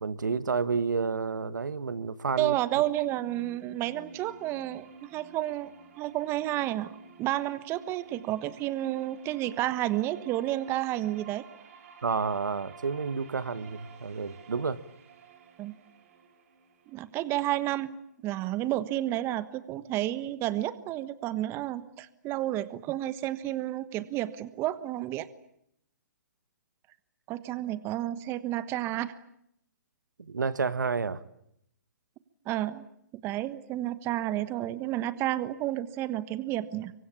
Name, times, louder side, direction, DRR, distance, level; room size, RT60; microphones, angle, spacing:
voice 1, 0.0-2.5 12.0-14.8 30.2-31.2, right 5 dB, 80° right, 16 dB, 1.4 m, -30 dB
sound 1, 2.1-18.0, right 5 dB, 45° right, 4.3 m, -53 dB
voice 2, 2.4-5.7 6.0-6.9 7.2-11.4 15.6-15.7 16.9-17.9 18.2-25.3 27.3-29.1 32.4-32.8 33.2-36.9, right 14 dB, 25° right, 15 dB, 1.3 m, -31 dB
26.0 x 24.0 x 8.5 m, 0.75 s
hypercardioid pair, 135°, 10 cm